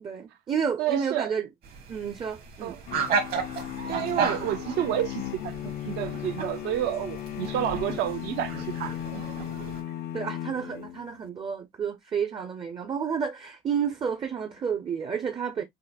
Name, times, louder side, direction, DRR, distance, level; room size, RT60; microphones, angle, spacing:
voice 1, 0.0-1.5 1.9-2.7 10.1-15.6, right 7 dB, 30° right, 0.5 m, -30 dB
voice 2, 0.8-1.3 2.6-2.8 3.9-9.5, right 11 dB, 85° right, 0.6 m, -30 dB
sound 1, 1.6-9.8, right 5 dB, 65° right, 1.5 m, -34 dB
sound 2, 2.9-11.2, left 12 dB, 70° left, 0.4 m, -36 dB
5.6 x 2.1 x 2.2 m
cardioid pair, 110°, 17 cm